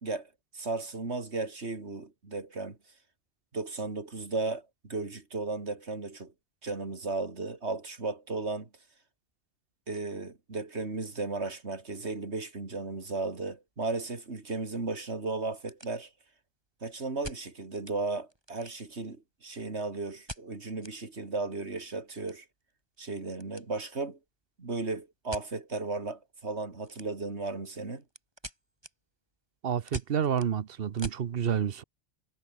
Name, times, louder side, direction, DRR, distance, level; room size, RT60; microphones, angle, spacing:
voice 1, 0.0-2.8 3.5-6.3 6.6-8.7 9.9-16.1 16.8-22.5 23.0-24.2 24.6-28.0, right 3 dB, 85° right, 3.2 m, -35 dB
sound 1, 13.7-13.8 14.4-14.5 14.8-14.9 15.4-16.4 17.2-18.0 18.3-19.1 20.3-21.0 21.3-21.4 21.7-23.7 23.9-24.3 25.3-25.5 26.8-27.4 27.7-31.3, right 1 dB, 25° right, 5.6 m, -45 dB
voice 2, 29.6-31.8, right 8 dB, 60° right, 1.0 m, -29 dB
omnidirectional pair, 1.1 m